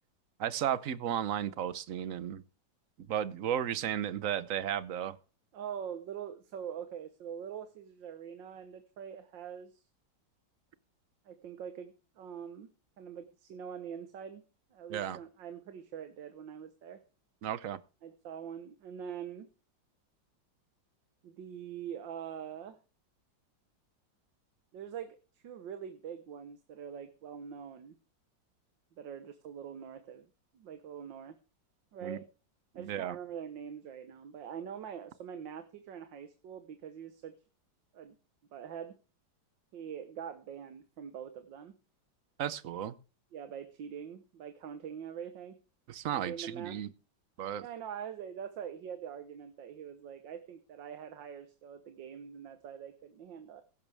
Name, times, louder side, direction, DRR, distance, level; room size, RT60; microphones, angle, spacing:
voice 1, 0.4-2.4 3.0-5.2 14.9-15.2 17.4-17.8 32.0-32.2 32.7-33.2 42.4-43.0 45.9-46.9 47.4-47.7, right 10 dB, 55° right, 1.0 m, -34 dB
voice 2, 5.5-9.8 11.3-12.7 13.0-14.4 14.7-17.0 18.0-19.5 21.2-22.8 24.7-28.0 29.0-30.3 30.5-31.4 31.9-32.2 32.8-37.3 37.9-38.2 38.5-38.9 39.7-41.7 43.3-45.6 46.1-46.8 47.6-53.6, right 8 dB, 75° right, 1.8 m, -44 dB
16.0 x 12.5 x 3.4 m
omnidirectional pair, 2.1 m